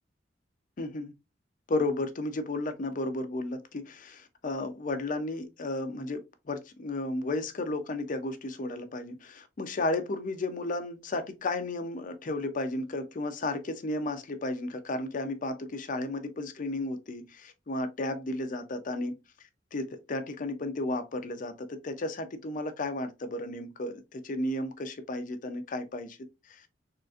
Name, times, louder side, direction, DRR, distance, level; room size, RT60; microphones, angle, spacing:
voice 1, 0.8-1.1 1.7-19.2 19.7-26.6, left 2 dB, 45° left, 0.5 m, -33 dB
3.8 x 2.4 x 2.4 m
head